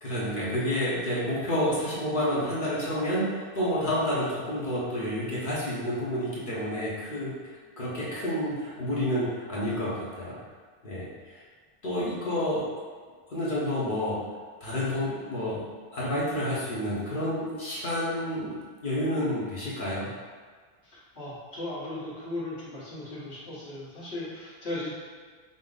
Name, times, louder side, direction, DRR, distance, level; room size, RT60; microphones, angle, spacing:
voice 1, 0.0-7.4 7.8-10.4 10.8-11.4 11.8-12.7 13.3-14.2 14.6-15.6 15.9-18.6 18.8-20.1, equal, 55° left, -7 dB, 1.1 m, -29 dB
voice 2, 20.8-24.9, left 2 dB, 80° left, -9 dB, 1.6 m, -37 dB
5.4 x 2.0 x 3.8 m, 1.5 s
omnidirectional pair, 1.1 m